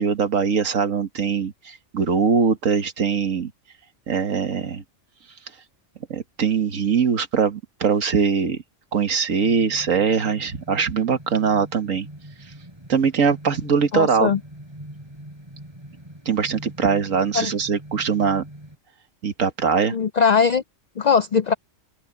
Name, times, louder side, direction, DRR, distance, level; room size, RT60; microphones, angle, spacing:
voice 1, 0.0-3.5 4.1-4.8 6.1-8.6 8.9-12.1 12.9-14.3 16.3-18.4 19.2-20.0, right 6 dB, 90° right, 1.9 m, -22 dB
sound 1, 9.4-18.8, right 1 dB, 20° right, 5.0 m, -42 dB
voice 2, 13.9-14.4 17.3-17.5 19.9-20.6 21.0-21.5, left 6 dB, 80° left, 0.3 m, -20 dB
open air
omnidirectional pair, 1.3 m